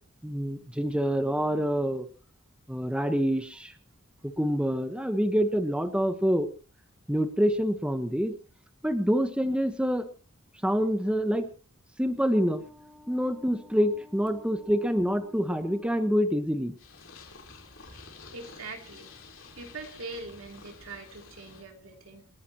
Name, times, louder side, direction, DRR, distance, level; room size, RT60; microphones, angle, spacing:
voice 1, 0.2-2.1 2.7-3.7 4.2-6.5 7.1-8.3 8.8-10.1 10.6-11.5 12.0-16.7, equal, 5° right, 7 dB, 1.2 m, -26 dB
Purr, 16.8-21.6, left 4 dB, 65° left, 4.0 m, -50 dB
voice 2, 18.3-19.1 19.5-22.3, right 3 dB, 80° right, 3 dB, 3.2 m, -42 dB
28.5 x 11.0 x 3.0 m, 0.36 s
head